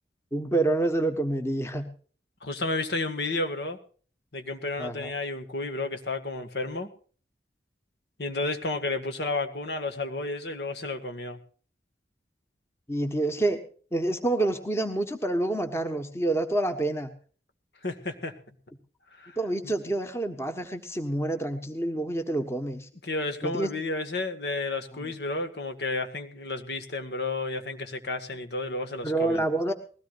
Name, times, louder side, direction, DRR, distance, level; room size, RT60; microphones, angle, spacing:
voice 1, 0.3-1.8 4.8-5.1 12.9-13.6 13.9-17.1 19.4-22.9 23.4-23.7 25.0-25.1 29.0-29.7, right 2 dB, 15° left, 7 dB, 1.4 m, -27 dB
voice 2, 2.4-3.8 4.3-6.9 8.2-11.4 17.8-18.5 19.1-19.4 19.6-19.7 23.0-29.4, left 2 dB, 65° left, 6 dB, 1.9 m, -32 dB
21.0 x 17.0 x 2.6 m, 0.41 s
head